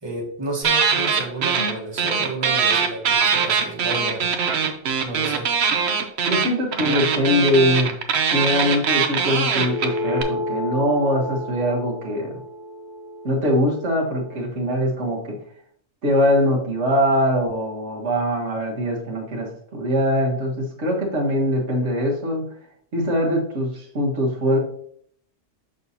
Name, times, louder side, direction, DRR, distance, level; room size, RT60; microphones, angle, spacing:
voice 1, 0.0-4.3 5.0-5.5, right 2 dB, 25° right, -2 dB, 1.4 m, -31 dB
sound 1, 0.6-1.7 2.0-10.2, right 6 dB, 70° right, 1.0 m, -21 dB
voice 2, 6.3-7.9 8.3-12.3 13.2-15.4 16.0-22.4 22.9-24.6, equal, 85° right, -1 dB, 1.8 m, -22 dB
sound 2, 9.6-14.4, left 1 dB, 45° left, 0.8 m, -31 dB
6.4 x 6.0 x 2.8 m, 0.64 s
omnidirectional pair, 1.2 m